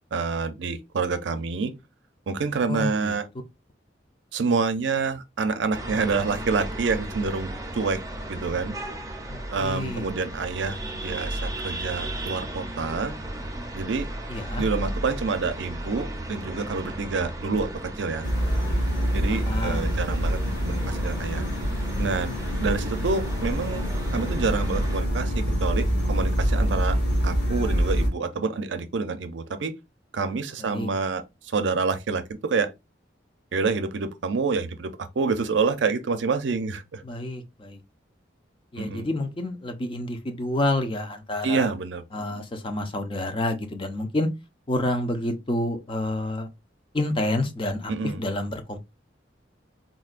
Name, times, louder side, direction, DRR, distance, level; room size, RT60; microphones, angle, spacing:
voice 1, 0.1-1.7 2.3-3.3 4.3-8.0 8.3-8.8 9.5-13.1 13.7-14.1 14.6-18.2 19.1-21.4 22.0-22.3 22.6-27.0 27.2-29.8 30.1-31.2 31.5-32.7 33.5-37.0 38.8-39.1 41.4-42.0 47.9-48.2, right 4 dB, 75° right, 0.5 m, -27 dB
voice 2, 2.7-3.1 9.3-10.1 14.3-14.6 19.3-19.9 30.6-30.9 37.1-37.8 38.7-41.7 42.1-44.3 44.7-46.5 46.9-47.9 48.2-48.8, left 1 dB, 30° left, 0.5 m, -29 dB
sound 1, 5.7-25.0, right 1 dB, 20° right, 0.5 m, -35 dB
sound 2, 18.2-28.1, equal, 75° left, 1.9 m, -25 dB
3.8 x 2.2 x 2.4 m
head